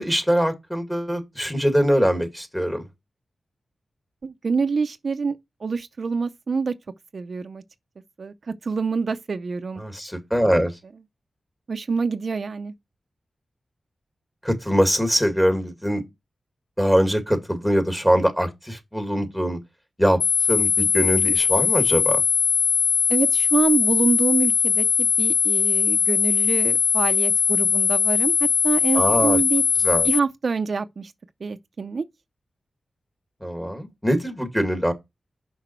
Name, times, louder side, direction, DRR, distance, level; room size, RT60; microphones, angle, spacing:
voice 1, 0.0-2.8 9.8-10.7 14.4-16.0 16.8-19.6 20.0-20.2 20.5-22.2 28.9-29.4 29.8-30.1 33.4-34.9, equal, 5° left, 2.0 m, -22 dB
voice 2, 4.2-5.4 5.6-6.7 7.1-7.6 8.2-9.8 11.7-12.7 23.1-28.4 28.6-29.6 30.0-31.1 31.4-32.0, right 4 dB, 60° right, 0.5 m, -26 dB
sound 1, 20.2-30.2, left 6 dB, 85° left, 0.4 m, -20 dB
5.9 x 5.5 x 4.3 m
cardioid pair, 65°, 0 cm